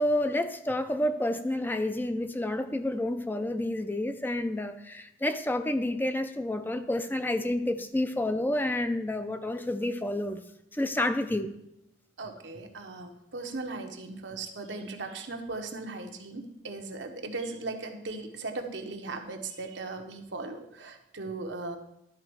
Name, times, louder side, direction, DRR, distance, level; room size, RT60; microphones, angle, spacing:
voice 1, 0.0-10.4 10.8-11.5, left 1 dB, 10° left, 9 dB, 0.4 m, -29 dB
voice 2, 12.2-21.8, right 3 dB, 85° right, 4 dB, 1.0 m, -38 dB
12.0 x 4.3 x 4.7 m, 0.82 s
head